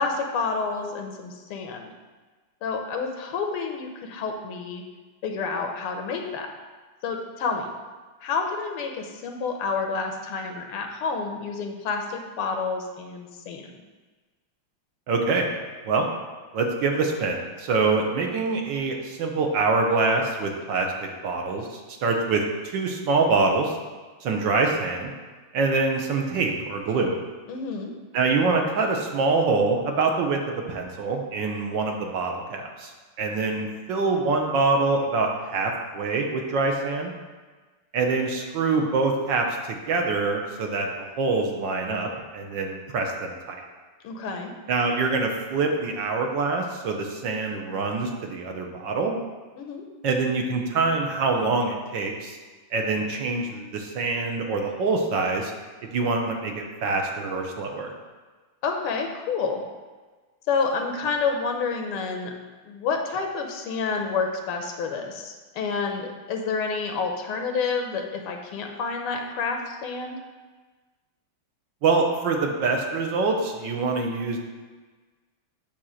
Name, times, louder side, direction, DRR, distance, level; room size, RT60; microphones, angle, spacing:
voice 1, 0.0-1.9 2.6-4.8 5.2-6.5 7.0-7.7 8.2-13.7 27.5-27.9 44.0-44.5 49.6-49.9 58.6-59.6 60.5-62.3 62.7-70.2, left 4 dB, 90° left, 3 dB, 1.8 m, -29 dB
voice 2, 15.1-15.5 15.8-16.1 16.5-23.7 24.2-25.1 25.5-27.2 28.1-37.1 37.9-43.6 44.7-49.2 50.0-52.4 52.7-55.5 55.9-57.9 71.8-74.4, right 3 dB, 65° right, 2 dB, 1.3 m, -25 dB
8.6 x 2.9 x 6.3 m, 1.3 s
omnidirectional pair, 2.4 m